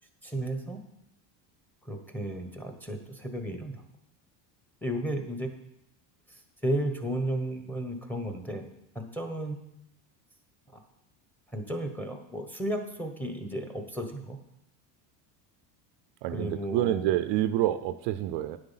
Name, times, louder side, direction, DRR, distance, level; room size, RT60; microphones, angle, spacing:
voice 1, 0.2-0.8 1.8-3.8 4.8-5.5 6.3-8.6 8.9-9.6 10.7-10.8 11.5-14.4 16.3-17.1, right 1 dB, 5° left, 6 dB, 1.1 m, -33 dB
voice 2, 16.2-18.6, right 13 dB, 55° right, 12 dB, 0.6 m, -27 dB
9.9 x 7.7 x 5.7 m, 0.81 s
cardioid pair, 140°, 50 cm